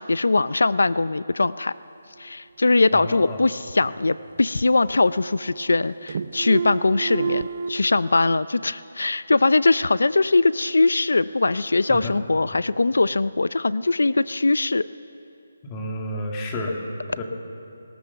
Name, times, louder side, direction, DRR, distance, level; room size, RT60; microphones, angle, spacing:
voice 1, 0.0-1.7 2.2-14.9, left 3 dB, 85° left, 17 dB, 0.5 m, -21 dB
voice 2, 2.9-3.5 11.9-12.1 15.6-16.8 17.2-17.3, left 1 dB, 20° left, 1 dB, 2.2 m, -30 dB
sound 1, 3.6-4.6 4.9-5.8 6.1-7.7, right 6 dB, 45° right, 0.6 m, -31 dB
20.5 x 18.5 x 7.0 m, 2.8 s
hypercardioid pair, 170°, 0 cm